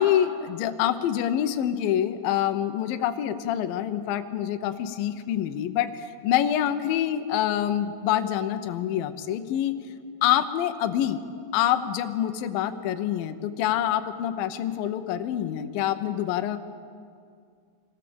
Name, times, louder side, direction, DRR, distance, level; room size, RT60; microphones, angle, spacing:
voice 1, 0.0-9.7 10.2-11.2 11.5-16.6, left 11 dB, 75° left, 8 dB, 2.3 m, -26 dB
25.0 x 17.5 x 7.1 m, 2.2 s
omnidirectional pair, 5.0 m